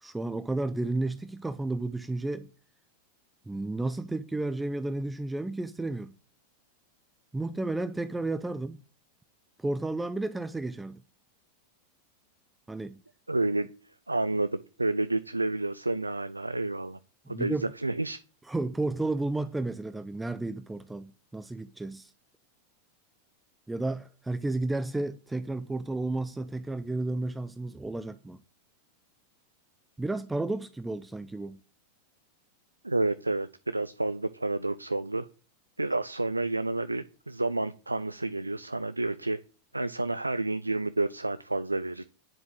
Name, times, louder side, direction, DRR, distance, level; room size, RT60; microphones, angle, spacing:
voice 1, 0.0-2.5 3.5-6.1 7.3-8.8 9.6-11.0 12.7-13.0 17.3-17.7 18.5-22.1 23.7-28.4 30.0-31.6, right 2 dB, 5° right, 0.6 m, -32 dB
voice 2, 13.3-13.7 14.1-17.0 17.3-18.2 32.8-35.3 35.8-39.4 39.7-42.0, right 2 dB, 85° right, 0.6 m, -30 dB
10.0 x 7.4 x 8.8 m
figure-of-eight pair, 90°, 0 cm